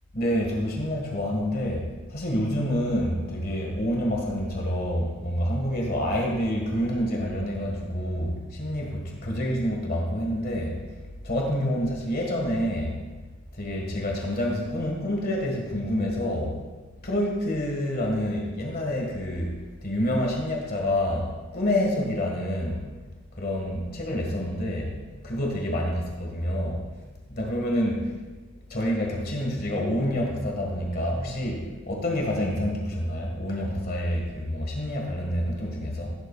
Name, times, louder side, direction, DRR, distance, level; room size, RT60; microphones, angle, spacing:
voice 1, 0.1-10.8 11.2-13.0 13.5-16.6 17.0-19.5 19.8-22.8 23.3-24.9 25.2-26.8 27.3-28.2 28.7-36.1, equal, 40° left, 0 dB, 1.6 m, -27 dB
16.0 x 7.7 x 2.3 m, 1.3 s
head